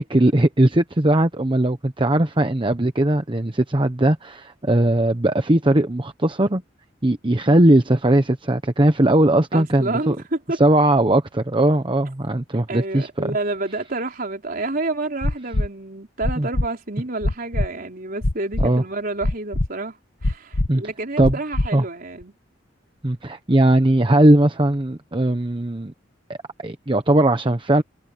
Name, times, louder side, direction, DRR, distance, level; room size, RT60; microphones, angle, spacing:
voice 1, 0.0-6.6 7.0-10.2 10.6-13.3 16.4-16.5 18.6-18.8 20.7-20.8 21.2-21.4 21.7-21.8 23.0-25.9 26.6-27.8, right 1 dB, 25° right, 1.0 m, -19 dB
voice 2, 9.5-10.6 12.7-20.0 20.2-22.3, right 2 dB, 50° right, 4.2 m, -29 dB
sound 1, 15.2-15.7 16.2-16.7 17.2-17.7 18.2-18.7 19.2-19.7 20.2-20.7 21.2-21.7 22.2-22.3, left 1 dB, 85° left, 1.4 m, -22 dB
head